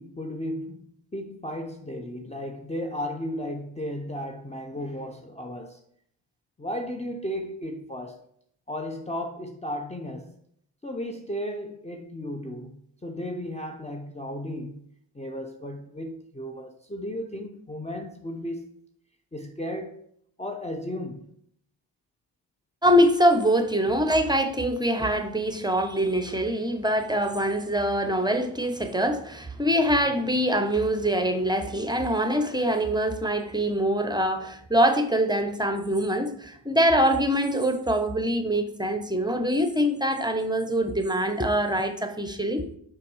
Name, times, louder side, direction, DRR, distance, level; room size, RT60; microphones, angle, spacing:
voice 1, 0.0-5.8 6.6-8.2 8.7-10.3 10.8-14.9 15.1-18.7 19.3-20.0 20.4-21.3, equal, 15° left, 0.7 m, -34 dB
voice 2, 22.8-42.8, equal, 10° right, 0.9 m, -24 dB
5.7 x 4.8 x 4.9 m
cardioid pair, 55°, 46 cm